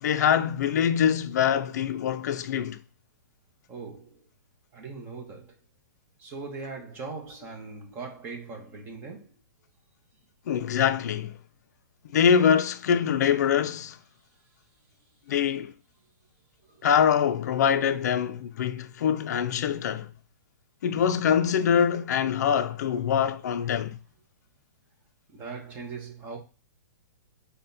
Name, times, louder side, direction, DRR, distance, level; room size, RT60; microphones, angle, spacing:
voice 1, 0.0-2.8 10.5-11.4 12.1-14.0 15.3-15.7 16.8-20.1 20.8-24.0, left 8 dB, 60° left, 0.4 m, -24 dB
voice 2, 3.7-4.3 4.7-5.5 6.2-9.3 16.7-16.8 23.7-23.9 25.3-26.4, right 4 dB, 20° right, 0.8 m, -40 dB
5.5 x 2.2 x 2.6 m
hypercardioid pair, 160°, 10 cm